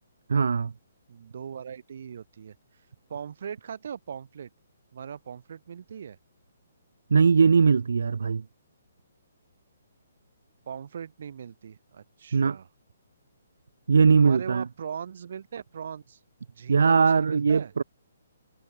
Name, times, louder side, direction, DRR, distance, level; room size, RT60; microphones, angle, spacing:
voice 1, 0.3-0.7 7.1-8.4 12.3-12.6 13.9-14.6 16.7-17.8, right 5 dB, 75° right, 2.5 m, -20 dB
voice 2, 1.1-2.6 3.1-4.5 4.9-6.2 10.7-12.7 14.2-16.2 16.5-17.7, right 7 dB, 45° right, 3.5 m, -39 dB
hypercardioid pair, 175°, 0 cm